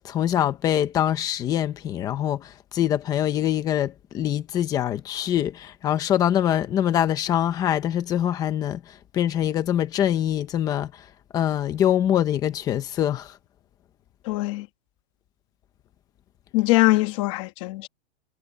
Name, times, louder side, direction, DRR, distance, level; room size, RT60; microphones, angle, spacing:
voice 1, 0.0-11.0 11.3-13.4, left 11 dB, 10° left, 0.8 m, -24 dB
voice 2, 14.2-14.7 16.5-17.9, left 20 dB, 25° left, 1.5 m, -22 dB
supercardioid pair, 175°, 34 cm